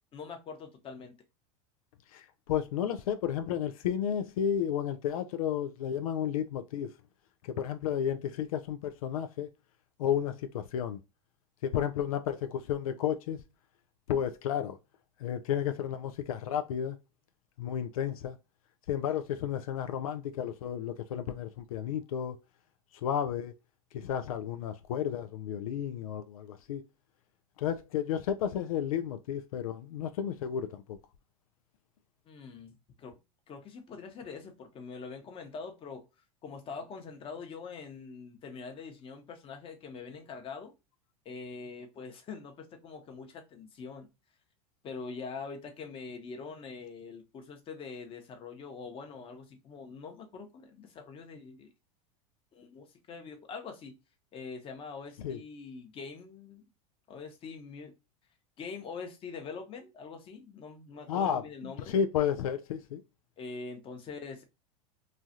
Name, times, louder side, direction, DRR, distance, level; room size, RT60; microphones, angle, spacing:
voice 1, 0.1-1.1 32.3-33.2 33.5-36.1 36.4-40.7 41.2-44.1 44.8-51.7 52.5-54.0 54.3-56.6 57.1-57.9 58.6-61.9 63.4-64.4, left 5 dB, 30° left, 0.9 m, -44 dB
voice 2, 2.1-6.9 7.5-9.5 10.0-11.0 11.6-13.4 14.1-14.8 15.2-17.0 17.6-18.4 18.9-22.4 23.0-23.5 23.9-26.8 27.6-31.0 55.2-55.4 61.1-63.0, left 9 dB, 85° left, 0.4 m, -32 dB
3.1 x 2.4 x 2.6 m
supercardioid pair, 115°, 18 cm